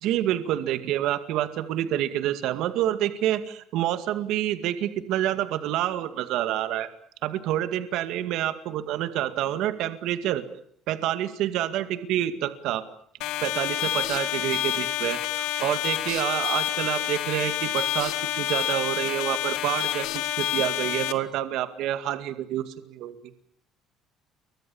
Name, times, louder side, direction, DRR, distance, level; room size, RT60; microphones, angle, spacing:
voice 1, 0.0-6.9 7.2-10.4 10.9-12.8 13.4-23.1, right 12 dB, 70° right, 11 dB, 2.1 m, -28 dB
sound 1, 13.2-21.1, left 14 dB, 85° left, 1.9 m, -28 dB
29.5 x 24.0 x 7.2 m, 0.65 s
cardioid pair, 150°, 0 cm